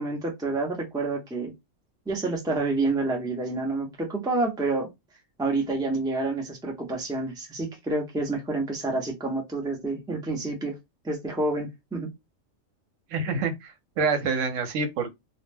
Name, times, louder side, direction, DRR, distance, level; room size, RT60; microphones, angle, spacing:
voice 1, 0.0-1.5 2.1-4.9 5.4-10.8 11.0-12.1, right 2 dB, 5° right, 0.4 m, -28 dB
voice 2, 13.1-15.1, right 4 dB, 80° right, 1.0 m, -27 dB
2.2 x 2.1 x 3.3 m
omnidirectional pair, 1.3 m